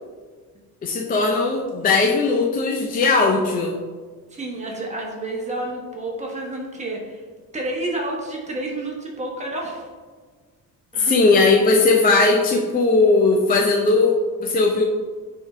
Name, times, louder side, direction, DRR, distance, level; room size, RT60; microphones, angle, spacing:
voice 1, 0.8-3.8 11.0-14.8, left 3 dB, 25° left, 0 dB, 0.4 m, -18 dB
voice 2, 4.3-7.2 7.5-9.9 10.9-11.1, right 2 dB, 20° right, -1 dB, 1.1 m, -29 dB
9.1 x 3.6 x 3.2 m, 1.5 s
cardioid pair, 170°, 36 cm